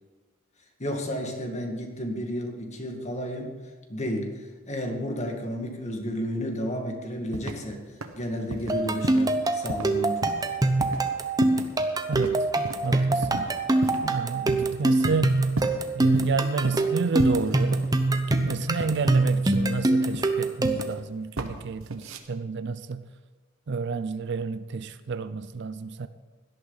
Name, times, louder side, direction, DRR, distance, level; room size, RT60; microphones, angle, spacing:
voice 1, 0.8-3.5 3.9-4.3 4.7-7.8 8.1-10.2, equal, 35° left, 3 dB, 1.9 m, -32 dB
sound 1, 7.3-7.7 8.0-8.2 8.5-8.7 9.0-9.4 9.7-9.9 10.2-10.5 10.8-11.0 11.4-11.8 12.1-12.4 12.7-12.8 13.2-13.5 13.8-14.2 14.5-14.7 15.0-15.8 16.1-16.3 16.6-16.9 17.2-18.0 18.3-19.1 19.5-19.8 20.1-21.0 21.4-21.5 21.8-22.2, right 2 dB, 80° right, 1.3 m, -34 dB
sound 2, 8.7-21.0, right 2 dB, 20° right, 0.8 m, -24 dB
voice 2, 12.1-12.4 12.8-13.5 14.0-15.4 15.9-17.9 18.3-23.1 23.7-26.1, right 4 dB, 55° right, 13 dB, 0.5 m, -29 dB
17.5 x 12.0 x 4.0 m, 1.4 s
head